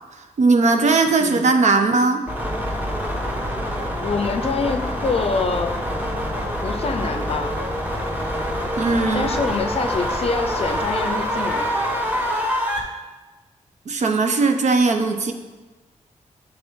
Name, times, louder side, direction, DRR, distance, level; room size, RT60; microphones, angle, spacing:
voice 1, 0.4-2.2 8.8-9.3 13.9-15.3, right 3 dB, 60° right, 5 dB, 0.6 m, -18 dB
voice 2, 1.2-1.5 4.0-5.7 6.6-7.6 9.1-11.6, left 4 dB, 50° left, 6 dB, 0.5 m, -25 dB
sound 1, 2.3-12.8, equal, 15° right, 0.9 m, -25 dB
9.5 x 3.4 x 3.5 m, 1.2 s
wide cardioid pair, 130°, 13 cm